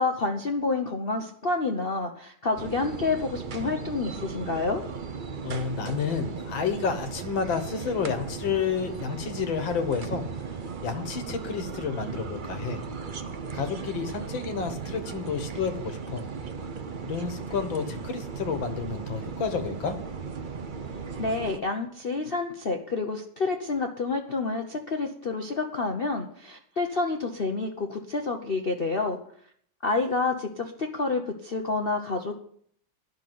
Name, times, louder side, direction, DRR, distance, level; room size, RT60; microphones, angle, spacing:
voice 1, 0.0-4.8 21.2-29.2 29.8-32.3, left 3 dB, 45° left, 4 dB, 0.7 m, -28 dB
sound 1, 2.6-21.6, right 5 dB, 80° right, 0.4 m, -37 dB
voice 2, 5.4-10.4 10.8-12.8 13.5-16.2 17.0-20.0, left 6 dB, 70° left, 8 dB, 2.0 m, -30 dB
11.0 x 6.4 x 9.2 m, 0.63 s
omnidirectional pair, 2.2 m